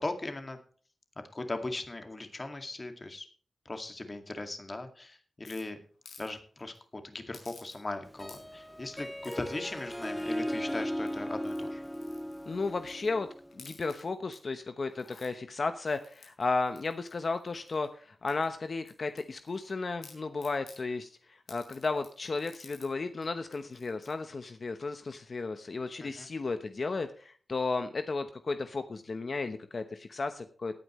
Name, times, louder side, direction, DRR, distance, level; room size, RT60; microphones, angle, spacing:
voice 1, 0.0-0.6 1.3-3.3 3.7-5.8 6.2-11.8 26.0-26.3, left 2 dB, 25° left, 7 dB, 2.1 m, -38 dB
sound 1, 5.4-6.3 6.6-6.8 7.3-8.0 8.2-8.7 9.2-9.5 10.2-10.6 11.0-13.1 13.5-14.4 14.8-15.3 15.9-17.9 18.3-19.7 20.0-20.8 21.5-22.9 23.2-23.3 23.5-24.1, left 4 dB, 80° left, 4.9 m, -55 dB
Harp, 8.1-13.6, equal, 5° left, 0.5 m, -37 dB
voice 2, 12.5-13.3 13.5-30.8, left 3 dB, 45° left, 9 dB, 0.9 m, -34 dB
18.0 x 9.3 x 3.1 m, 0.42 s
wide cardioid pair, 130°, 0 cm